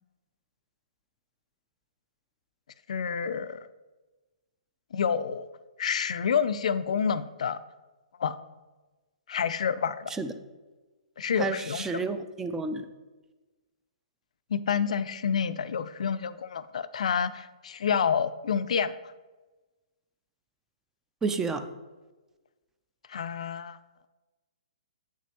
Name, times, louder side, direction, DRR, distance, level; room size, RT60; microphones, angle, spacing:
voice 1, 2.9-3.7 4.9-5.5 5.8-7.6 8.2-8.3 9.3-10.1 11.2-12.0 14.5-18.9 23.1-23.8, left 7 dB, 70° left, 14 dB, 0.3 m, -28 dB
voice 2, 11.4-12.9 21.2-21.7, right 4 dB, 10° right, 9 dB, 0.4 m, -31 dB
7.8 x 6.0 x 2.9 m, 1.2 s
hypercardioid pair, 135°, 4 cm